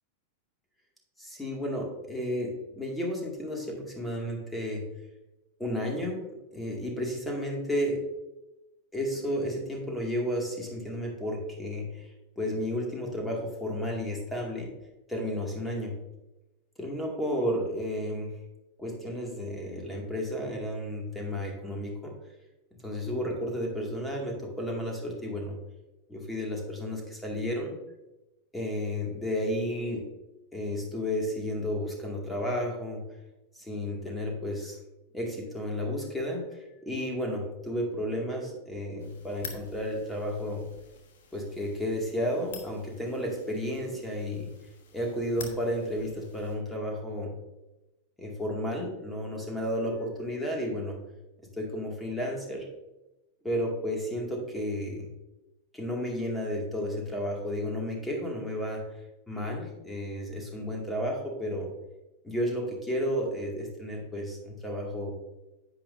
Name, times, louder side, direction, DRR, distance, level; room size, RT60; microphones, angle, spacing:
voice 1, 1.2-4.9 5.6-6.2 6.5-8.0 8.9-14.7 15.1-16.0 16.8-18.4 18.8-22.1 22.8-25.6 26.1-27.7 28.5-30.1 30.5-33.1 33.5-34.8 35.1-40.7 41.3-44.5 44.9-47.3 48.2-51.0 51.6-52.7 53.4-55.1 55.7-58.9 59.3-61.7 62.2-65.1, equal, 5° left, 0 dB, 2.3 m, -32 dB
sound 1, 39.0-46.6, left 6 dB, 60° left, 1.4 m, -49 dB
10.0 x 8.5 x 2.7 m, 0.98 s
figure-of-eight pair, 90°, 0 cm